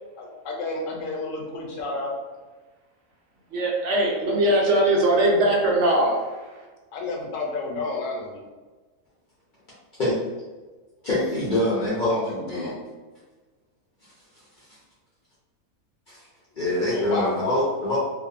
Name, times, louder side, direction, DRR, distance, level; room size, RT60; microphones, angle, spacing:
voice 1, 0.2-2.1 6.9-8.4 11.8-12.7 16.9-17.6, left 3 dB, 70° left, 0 dB, 0.9 m, -31 dB
voice 2, 3.5-6.7, right 1 dB, 65° right, -2 dB, 0.8 m, -21 dB
voice 3, 11.0-12.7 16.1-16.2 16.6-18.0, left 1 dB, 50° left, -9 dB, 0.6 m, -24 dB
2.5 x 2.1 x 2.4 m, 1.3 s
omnidirectional pair, 1.5 m